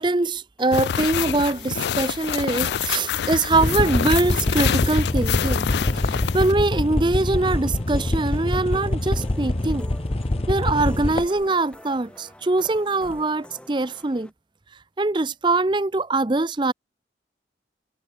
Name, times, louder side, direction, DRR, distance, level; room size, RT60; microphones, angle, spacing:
voice 1, 0.0-5.7 6.1-9.9 10.5-14.3 15.0-16.7, right 2 dB, 25° right, 0.6 m, -23 dB
sound 1, 0.6-14.3, equal, 5° left, 3.0 m, -47 dB
sound 2, 0.7-6.5, left 8 dB, 70° left, 0.3 m, -26 dB
sound 3, 3.5-11.4 12.6-12.7 13.0-13.1, left 1 dB, 35° left, 0.8 m, -25 dB
head